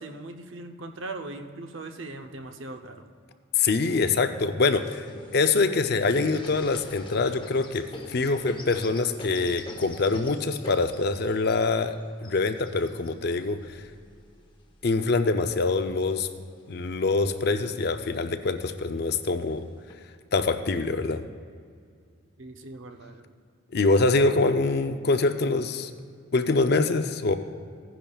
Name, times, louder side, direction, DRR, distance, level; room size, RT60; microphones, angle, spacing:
voice 1, 0.0-3.1 22.4-23.3, right 2 dB, 65° right, 5 dB, 0.7 m, -40 dB
voice 2, 3.6-5.1 5.3-11.9 12.2-13.6 14.8-16.3 16.7-19.7 20.3-21.2 23.7-25.9 26.3-27.3, left 3 dB, 50° left, 8 dB, 0.5 m, -24 dB
sound 1, 4.7-14.9 15.6-16.5 16.9-17.0 17.3-18.0 18.8-18.9 19.5-19.9, left 1 dB, 20° left, 0.8 m, -45 dB
16.5 x 10.0 x 2.4 m, 2.1 s
head